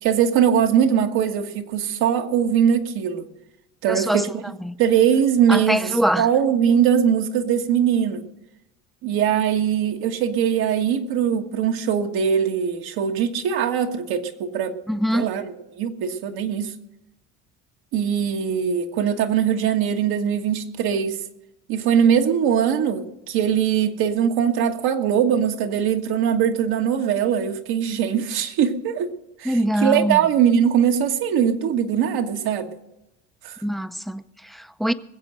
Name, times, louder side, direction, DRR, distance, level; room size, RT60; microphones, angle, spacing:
voice 1, 0.0-3.2 3.8-4.4 4.8-5.9 6.2-8.2 9.0-14.8 15.1-15.4 15.7-16.7 17.9-21.2 21.7-29.1 29.4-32.7 33.4-33.6, right 8 dB, 75° right, 1.6 m, -21 dB
voice 2, 3.9-4.2 4.6-4.7 5.5-6.3 14.9-15.3 29.4-30.2 33.6-34.9, equal, ahead, 0.5 m, -23 dB
21.0 x 7.9 x 6.4 m
cardioid pair, 110°, 38 cm